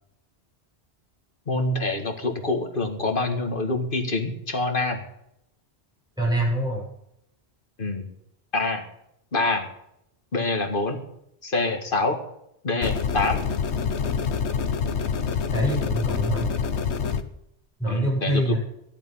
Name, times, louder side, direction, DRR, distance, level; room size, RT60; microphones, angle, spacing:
voice 1, 1.5-5.0 7.8-8.1 8.5-8.9 9.3-9.7 10.3-11.0 11.4-12.2 12.6-13.4 17.9-18.6, left 2 dB, 50° left, 5 dB, 2.0 m, -26 dB
voice 2, 6.2-6.8 15.5-16.5 17.8-18.6, right 1 dB, 5° right, -5 dB, 7.5 m, -25 dB
sound 1, 12.8-17.2, left 6 dB, 90° left, 1.2 m, -26 dB
14.0 x 11.5 x 5.6 m, 0.78 s
omnidirectional pair, 1.1 m